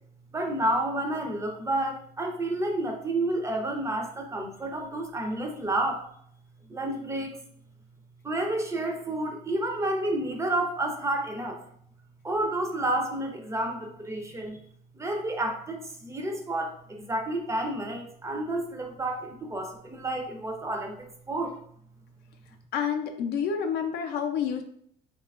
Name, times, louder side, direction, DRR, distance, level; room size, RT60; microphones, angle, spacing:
voice 1, 0.3-6.0 6.7-7.4 8.2-11.6 12.2-14.6 15.0-21.6, right 1 dB, 15° right, 3 dB, 0.4 m, -30 dB
voice 2, 22.7-24.6, left 7 dB, 75° left, 6 dB, 0.4 m, -28 dB
2.8 x 2.3 x 2.3 m, 0.67 s
cardioid pair, 110°, 17 cm